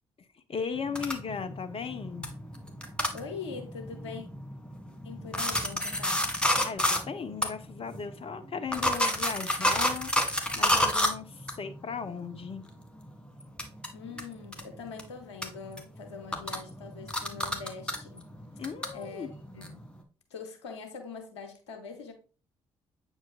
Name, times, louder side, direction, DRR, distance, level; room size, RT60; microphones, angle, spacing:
voice 1, 0.5-2.3 6.6-12.6 18.6-19.3, left 6 dB, 40° left, 1.1 m, -37 dB
sound 1, 0.8-12.5 12.8-15.0 15.4-20.0, left 1 dB, 5° left, 2.2 m, -30 dB
voice 2, 3.1-4.3 5.0-6.2 13.9-18.3 18.9-19.3 19.5-19.8 20.3-22.1, left 5 dB, 85° left, 1.2 m, -42 dB
8.6 x 5.2 x 2.5 m
hypercardioid pair, 45°, 14 cm